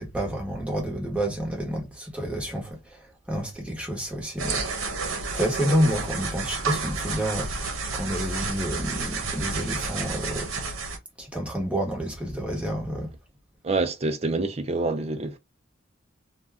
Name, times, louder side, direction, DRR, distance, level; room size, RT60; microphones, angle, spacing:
voice 1, 0.0-4.6 5.3-10.5 11.2-13.1, equal, 5° right, 0.9 m, -29 dB
sound 1, 4.4-11.0, right 4 dB, 80° right, 0.8 m, -30 dB
voice 2, 13.6-15.4, right 3 dB, 30° right, 0.5 m, -26 dB
2.6 x 2.3 x 3.3 m
head